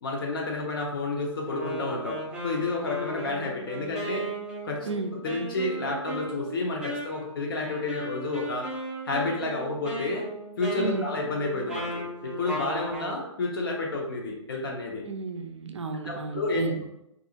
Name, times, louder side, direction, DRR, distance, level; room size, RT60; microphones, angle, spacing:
voice 1, 0.0-4.3 4.6-8.7 9.0-10.3 10.6-15.0 16.1-16.8, left 2 dB, 45° left, 0 dB, 0.5 m, -30 dB
Wind instrument woodwind instrument, 1.4-13.2, right 1 dB, 5° right, 0.4 m, -36 dB
voice 2, 15.1-16.8, right 4 dB, 65° right, 6 dB, 0.4 m, -32 dB
2.5 x 2.3 x 2.7 m, 0.81 s
figure-of-eight pair, 125°, 16 cm